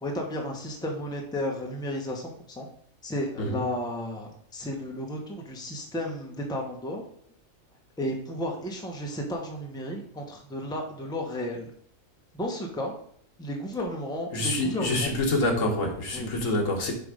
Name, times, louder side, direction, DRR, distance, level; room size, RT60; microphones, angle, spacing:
voice 1, 0.0-2.7 3.0-7.0 8.0-11.7 12.3-13.0 13.4-15.2 16.1-16.3, equal, 5° left, 0 dB, 0.9 m, -33 dB
voice 2, 14.3-16.9, left 1 dB, 70° left, 2 dB, 1.7 m, -26 dB
8.0 x 3.4 x 5.0 m, 0.65 s
omnidirectional pair, 1.4 m